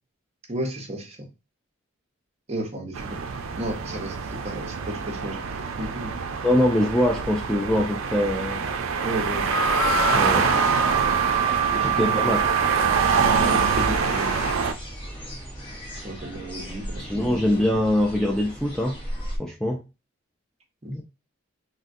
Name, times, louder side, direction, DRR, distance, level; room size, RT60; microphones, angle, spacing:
voice 1, 0.5-1.3 2.5-3.2 3.6-5.4 5.8-6.2 9.0-9.5 10.5-10.6 11.7-12.2 13.2-14.4 16.0-17.4 20.8-21.0, right 1 dB, 30° right, 2 dB, 0.8 m, -33 dB
sound 1, 2.9-14.7, right 5 dB, 85° right, 0.4 m, -25 dB
voice 2, 6.4-8.6 10.1-10.5 11.8-12.4 17.0-19.0 19.4-19.8 20.9-21.0, left 1 dB, 5° left, -2 dB, 0.3 m, -23 dB
sound 2, 9.5-14.5, right 5 dB, 85° left, 0.6 m, -26 dB
sound 3, 13.2-19.4, equal, 25° left, 0.9 m, -37 dB
3.6 x 2.2 x 2.6 m, 0.29 s
head